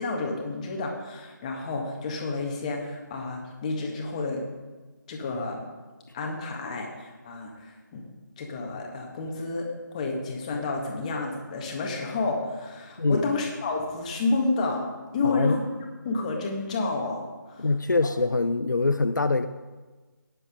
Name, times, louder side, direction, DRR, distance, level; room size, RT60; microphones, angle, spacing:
voice 1, 0.0-4.4 5.1-5.6 6.1-8.0 8.4-14.9 15.1-15.7 16.0-17.6 18.0-18.1, left 3 dB, 20° left, 1 dB, 1.7 m, -30 dB
voice 2, 13.0-13.3 15.2-15.6 17.6-19.5, left 3 dB, 65° left, 10 dB, 0.6 m, -24 dB
15.0 x 10.0 x 5.1 m, 1.3 s
figure-of-eight pair, 155°, 11 cm